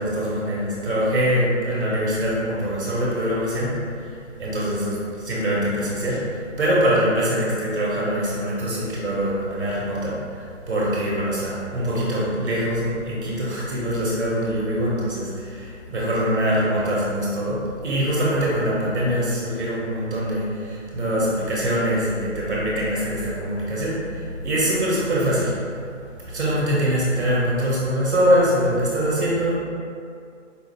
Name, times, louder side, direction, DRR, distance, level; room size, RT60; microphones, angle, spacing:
voice 1, 0.0-4.1 4.4-25.6 26.3-29.5, equal, 60° right, -6 dB, 1.2 m, -23 dB
4.9 x 2.0 x 3.6 m, 2.3 s
figure-of-eight pair, 150°, 38 cm